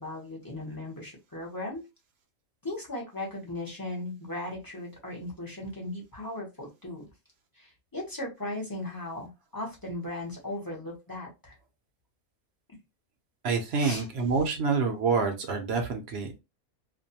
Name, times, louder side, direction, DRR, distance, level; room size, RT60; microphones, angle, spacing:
voice 1, 0.0-1.8 2.6-7.0 7.5-11.5 13.8-14.1, left 1 dB, 20° left, -3 dB, 0.6 m, -37 dB
voice 2, 13.4-16.4, right 5 dB, 60° right, 4 dB, 0.7 m, -27 dB
2.5 x 2.2 x 2.7 m, 0.25 s
omnidirectional pair, 1.5 m